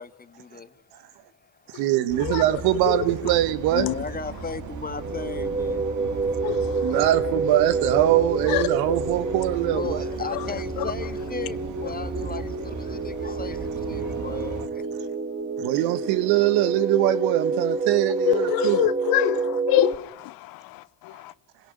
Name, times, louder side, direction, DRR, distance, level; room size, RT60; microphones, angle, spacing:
voice 1, 0.0-1.8 3.7-5.9 9.5-14.8, left 4 dB, 20° left, 1.7 m, -37 dB
voice 2, 1.7-3.9 6.8-10.0 15.6-18.8, right 13 dB, 65° right, 1.5 m, -22 dB
sound 1, 2.1-14.7, right 4 dB, 45° right, 2.7 m, -36 dB
voice 3, 2.2-2.6 2.9-3.0 3.7-3.9 6.4-6.8 8.5-8.7 10.3-10.4 10.8-10.9 18.3-21.3, left 18 dB, 60° left, 0.9 m, -26 dB
sound 2, 5.0-20.0, right 3 dB, 30° right, 5.9 m, -28 dB
27.0 x 17.5 x 9.4 m
hypercardioid pair, 60°, 40 cm